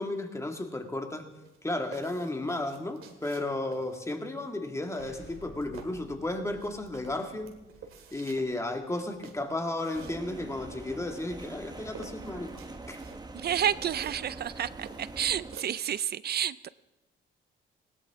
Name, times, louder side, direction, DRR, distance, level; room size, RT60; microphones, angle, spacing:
voice 1, 0.0-1.3 1.6-7.5 8.1-12.5 12.9-13.0, left 2 dB, 15° left, 4 dB, 2.1 m, -33 dB
sound 1, 1.3-16.0, right 6 dB, 75° right, 2.2 m, -52 dB
Explosion, 5.0-9.8, left 2 dB, 65° left, 3.7 m, -54 dB
sound 2, 9.9-15.6, right 2 dB, 20° right, 1.2 m, -44 dB
voice 2, 13.3-16.7, right 10 dB, 50° right, 18 dB, 0.5 m, -30 dB
20.0 x 17.0 x 3.7 m, 1.0 s
cardioid pair, 90°, 21 cm